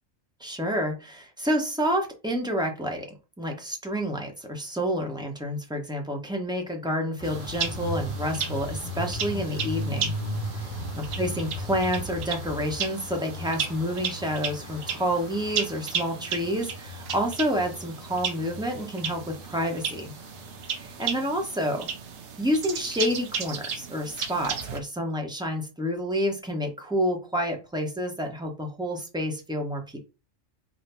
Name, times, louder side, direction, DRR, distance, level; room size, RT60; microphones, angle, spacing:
voice 1, 0.4-3.1 3.4-10.1 10.6-10.7 11.0-20.1 20.7-21.9 22.4-30.0, equal, 5° right, 1 dB, 0.8 m, -29 dB
sound 1, 7.2-21.1, left 1 dB, 75° left, 1.2 m, -37 dB
sound 2, 7.2-24.8, right 6 dB, 65° right, 1.0 m, -35 dB
4.0 x 2.1 x 4.2 m, 0.30 s
omnidirectional pair, 1.3 m